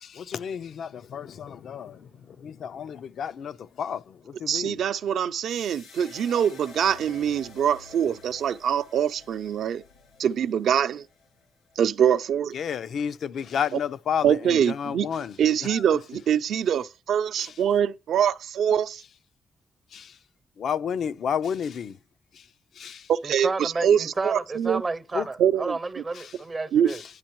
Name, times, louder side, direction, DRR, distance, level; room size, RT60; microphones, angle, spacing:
voice 1, 0.0-4.8 12.5-15.4 15.7-15.8 17.4-17.5 19.9-20.2 20.6-22.0 22.3-22.4 22.8-23.1 25.1-25.3 26.1-26.3 26.9-27.0, left 7 dB, 65° left, 0.5 m, -31 dB
voice 2, 4.5-9.8 10.2-11.0 11.8-12.5 14.2-15.1 15.4-19.0 23.1-24.8 25.4-25.8 26.7-26.9, right 9 dB, 75° right, 0.5 m, -24 dB
sound 1, 5.4-11.8, left 4 dB, 85° left, 4.7 m, -49 dB
voice 3, 23.2-27.0, right 3 dB, 25° right, 0.5 m, -31 dB
11.5 x 10.5 x 3.0 m
cardioid pair, 140°, 0 cm